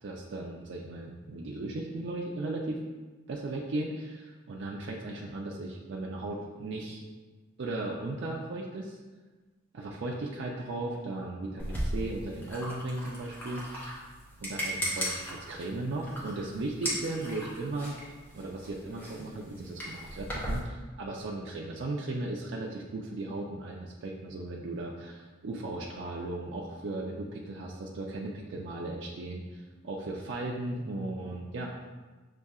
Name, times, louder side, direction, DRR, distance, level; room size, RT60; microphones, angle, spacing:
voice 1, 0.0-2.8 3.3-7.1 7.6-9.0 9.7-14.0 14.4-17.9 18.3-31.7, right 2 dB, 75° right, -2 dB, 0.4 m, -36 dB
sound 1, 11.6-20.6, equal, 10° left, 0.8 m, -37 dB
6.7 x 2.7 x 2.3 m, 1.3 s
head